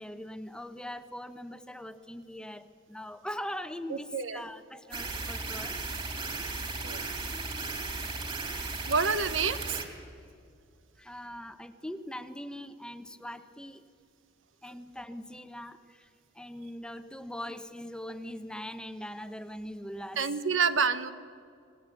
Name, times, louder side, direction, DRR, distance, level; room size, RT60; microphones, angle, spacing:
voice 1, 0.0-5.8 6.8-7.7 11.0-13.8 14.6-16.1 16.3-20.2, left 1 dB, 5° left, 10 dB, 0.9 m, -41 dB
voice 2, 3.9-4.4 6.8-7.1 8.9-9.8 20.2-21.1, right 5 dB, 85° right, 12 dB, 1.2 m, -28 dB
sound 1, 4.9-9.8, right 3 dB, 30° right, 3.2 m, -36 dB
27.0 x 19.0 x 8.2 m, 2.4 s
head